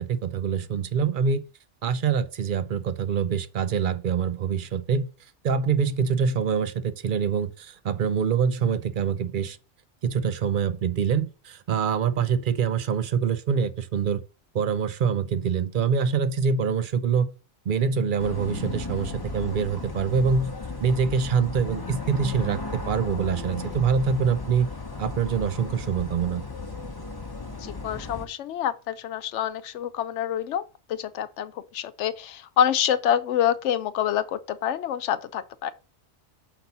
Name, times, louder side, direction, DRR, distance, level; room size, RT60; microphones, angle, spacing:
voice 1, 0.0-1.4 1.8-5.1 5.4-9.6 10.0-14.2 14.5-17.3 17.7-20.5 20.8-24.7 25.0-26.4, right 6 dB, 55° right, 0.7 m, -25 dB
sound 1, 18.2-28.3, left 3 dB, 20° left, 0.9 m, -35 dB
voice 2, 27.5-35.7, left 9 dB, 80° left, 0.9 m, -27 dB
5.9 x 4.0 x 5.5 m
omnidirectional pair, 1.2 m